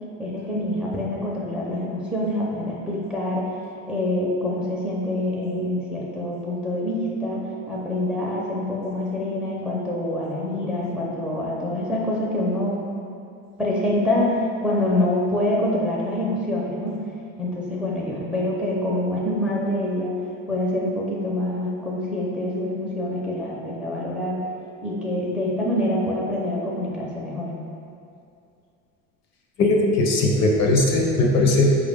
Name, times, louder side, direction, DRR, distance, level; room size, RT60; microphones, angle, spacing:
voice 1, 0.2-3.5 3.9-12.8 13.6-17.0 17.4-20.2 20.5-24.4 24.8-27.6, left 1 dB, 5° right, -5 dB, 0.5 m, -26 dB
voice 2, 29.6-31.8, left 2 dB, 50° left, 0 dB, 0.6 m, -19 dB
4.7 x 2.4 x 3.5 m, 2.5 s
supercardioid pair, 110°, 35 cm